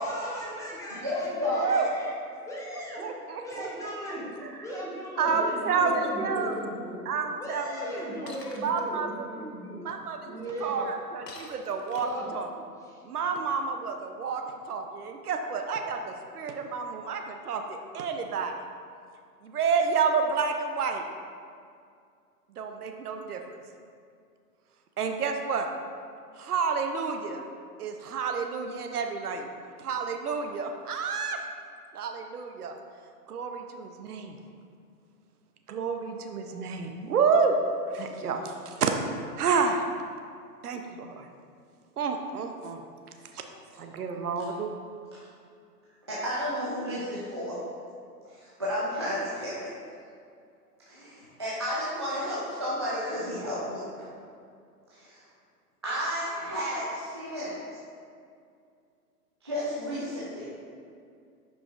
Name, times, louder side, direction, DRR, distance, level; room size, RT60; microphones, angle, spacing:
voice 1, 0.0-2.1 2.4-3.0 3.4-4.3 4.6-7.0 7.4-9.8 10.3-10.9 12.0-12.3 12.8-13.0, equal, 5° left, -6 dB, 0.8 m, -37 dB
voice 2, 1.0-1.6 46.1-47.6 48.4-49.6 50.9-53.9 54.9-55.2 55.8-57.6 59.4-60.5, equal, 20° right, -9 dB, 0.3 m, -32 dB
voice 3, 3.0-3.9 4.4-4.5 5.2-6.6 7.1-8.4 8.6-9.3 9.8-12.5 13.0-18.5 19.4-21.0 22.6-23.4 25.0-25.7 26.4-27.4 27.8-29.5 29.8-31.4 31.9-32.7 33.3-34.4 35.7-37.6 37.9-38.9 39.4-39.8 40.6-41.3 42.0-42.8 43.3-43.4 43.8-44.7, right 5 dB, 65° right, 5 dB, 0.8 m, -29 dB
Shatter, 8.3-8.8 11.3-12.3, left 3 dB, 75° left, 1.0 m, -46 dB
9.0 x 4.9 x 2.4 m, 2.3 s
figure-of-eight pair, 120°, 49 cm